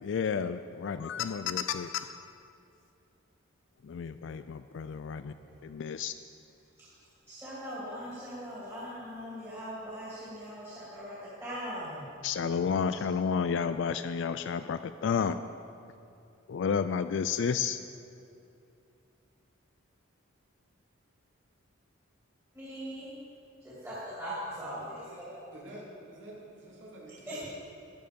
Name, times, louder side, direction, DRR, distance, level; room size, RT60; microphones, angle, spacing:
voice 1, 0.0-2.3 3.8-5.3 5.6-6.1 12.2-15.4 16.5-17.8, left 6 dB, 60° left, 11 dB, 0.3 m, -31 dB
voice 2, 7.3-12.1 12.9-13.0 22.5-23.1 23.6-25.4 27.3-27.4, equal, 10° right, -9 dB, 2.6 m, -40 dB
voice 3, 25.5-27.4, right 1 dB, 55° right, -4 dB, 3.3 m, -47 dB
13.0 x 10.0 x 5.3 m, 2.7 s
head